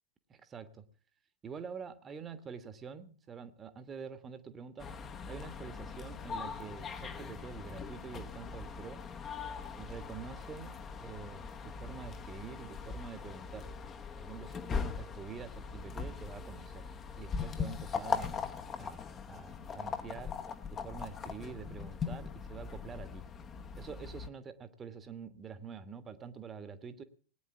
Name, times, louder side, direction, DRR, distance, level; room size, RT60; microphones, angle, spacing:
voice 1, 0.3-0.8 1.4-4.9 5.3-9.0 9.8-10.7 11.0-13.7 14.2-16.9 17.2-18.5 18.8-20.3 20.7-23.2 23.8-27.0, right 6 dB, 20° right, 11 dB, 1.4 m, -46 dB
sound 1, 4.8-24.3, left 6 dB, 25° left, 1.2 m, -40 dB
19.0 x 9.4 x 7.0 m, 0.43 s
figure-of-eight pair, 90°, 0 cm